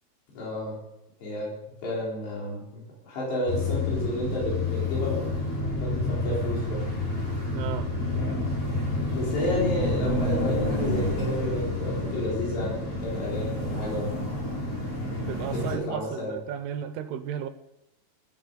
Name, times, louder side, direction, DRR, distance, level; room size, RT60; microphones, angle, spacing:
voice 1, 0.3-0.8 1.2-1.5 1.8-5.3 5.8-6.8 9.1-14.1 15.5-16.4, left 1 dB, 90° left, -5 dB, 6.4 m, -31 dB
sound 1, 3.5-15.7, left 2 dB, 20° left, 5.4 m, -29 dB
voice 2, 7.5-7.9 15.3-17.5, right 10 dB, 80° right, 11 dB, 2.7 m, -34 dB
14.0 x 10.0 x 6.9 m, 0.84 s
omnidirectional pair, 4.8 m